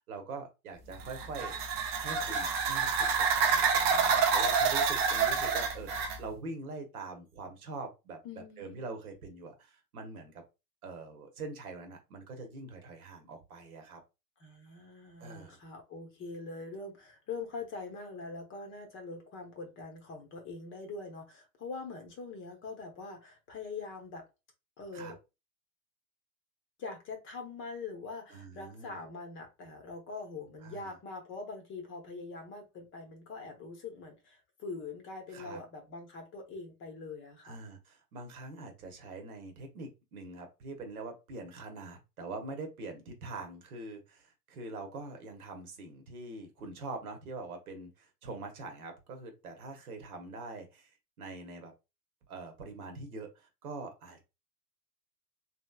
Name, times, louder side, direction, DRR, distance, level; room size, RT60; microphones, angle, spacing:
voice 1, 0.0-8.2 8.6-10.4 10.8-14.0 15.2-15.6 24.9-25.1 28.3-28.9 30.6-30.9 35.3-35.6 37.4-51.7 52.3-54.2, right 3 dB, 65° right, 1.1 m, -44 dB
sound 1, 0.9-6.2, right 5 dB, 40° right, 0.6 m, -28 dB
voice 2, 8.2-8.9 14.4-24.2 24.8-25.2 26.8-37.6, left 3 dB, 25° left, 0.8 m, -43 dB
3.1 x 2.8 x 2.2 m
figure-of-eight pair, 95°, 47 cm